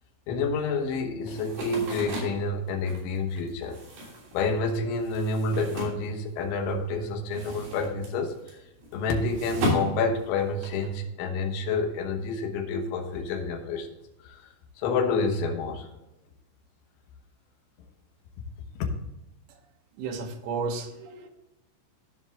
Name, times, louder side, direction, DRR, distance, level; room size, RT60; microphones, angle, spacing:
voice 1, 0.3-3.8 4.3-8.6 8.9-13.9 14.2-14.5 14.8-15.9 18.8-18.9, left 3 dB, 75° left, 2 dB, 3.6 m, -28 dB
sound 1, 1.3-6.7 7.0-10.9, equal, 55° right, 4.8 m, -35 dB
voice 2, 20.0-21.3, right 4 dB, 75° right, 3 dB, 3.0 m, -33 dB
15.0 x 5.3 x 3.6 m, 0.95 s
omnidirectional pair, 5.8 m